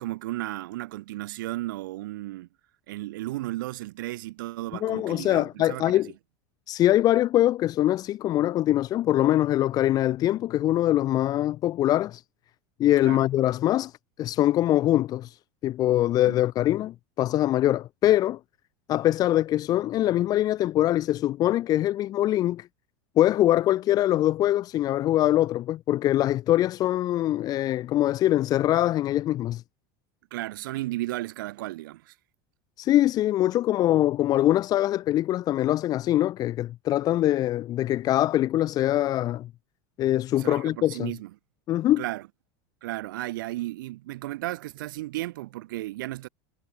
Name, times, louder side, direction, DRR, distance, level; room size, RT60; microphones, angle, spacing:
voice 1, 0.0-2.5 2.9-6.0 13.0-13.2 16.2-16.4 30.3-32.1 40.4-41.3 42.0-42.2 42.8-46.3, right 17 dB, 85° right, 3.1 m, -34 dB
voice 2, 4.8-6.1 6.7-12.2 12.8-18.4 18.9-22.7 23.2-29.6 32.8-39.5 40.0-41.1 41.7-42.0, left 13 dB, 35° left, 1.3 m, -23 dB
supercardioid pair, 140°, 11 cm